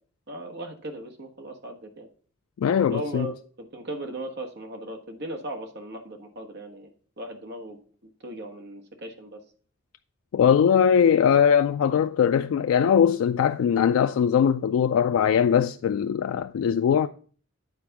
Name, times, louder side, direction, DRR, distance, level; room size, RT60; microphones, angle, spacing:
voice 1, 0.3-2.1 2.9-6.9 7.2-7.8 8.2-9.4, right 1 dB, 55° right, 1.3 m, -37 dB
voice 2, 2.6-3.3 10.3-17.1, left 8 dB, 85° left, 0.3 m, -21 dB
9.4 x 4.2 x 5.8 m
head